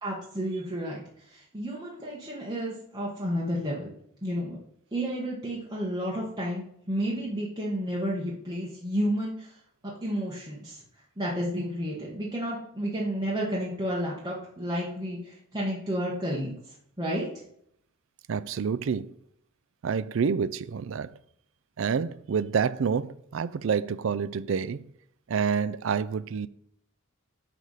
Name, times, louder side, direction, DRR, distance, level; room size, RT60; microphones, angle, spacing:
voice 1, 0.0-3.9 4.2-4.6 4.9-9.6 9.8-10.8 11.2-17.3, equal, 20° right, 1.3 m, -31 dB
voice 2, 18.3-19.1 19.8-21.1 21.8-24.8 25.3-26.5, right 6 dB, 60° right, 0.4 m, -28 dB
9.4 x 3.5 x 6.4 m
head